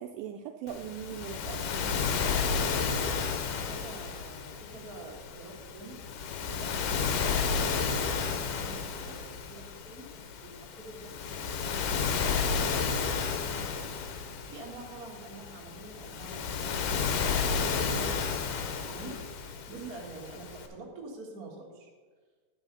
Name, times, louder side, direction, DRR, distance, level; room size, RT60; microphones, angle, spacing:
voice 1, 0.0-2.1 19.8-19.9, right 9 dB, 80° right, 5 dB, 2.1 m, -40 dB
Waves surf, 0.7-20.7, left 5 dB, 80° left, 2.7 m, -32 dB
voice 2, 2.9-10.1 10.4-14.0 14.4-17.1 17.3-21.9, right 3 dB, 45° right, -2 dB, 1.2 m, -47 dB
10.5 x 5.6 x 6.6 m, 1.5 s
omnidirectional pair, 4.4 m